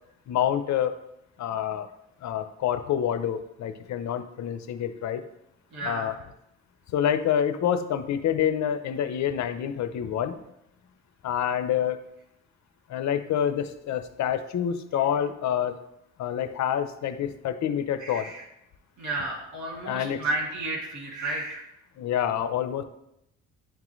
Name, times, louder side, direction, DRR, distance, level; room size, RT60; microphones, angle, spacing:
voice 1, 0.3-0.9 1.4-1.9 2.2-5.2 5.8-6.1 6.9-10.4 11.2-12.0 12.9-15.8 16.2-18.3 19.9-20.2 22.0-22.8, left 9 dB, 65° left, 10 dB, 0.6 m, -27 dB
voice 2, 5.7-6.1 18.0-18.4 19.0-21.7, right 2 dB, 70° right, -2 dB, 2.6 m, -32 dB
10.5 x 3.7 x 3.1 m, 0.82 s
cardioid pair, 90°, 30 cm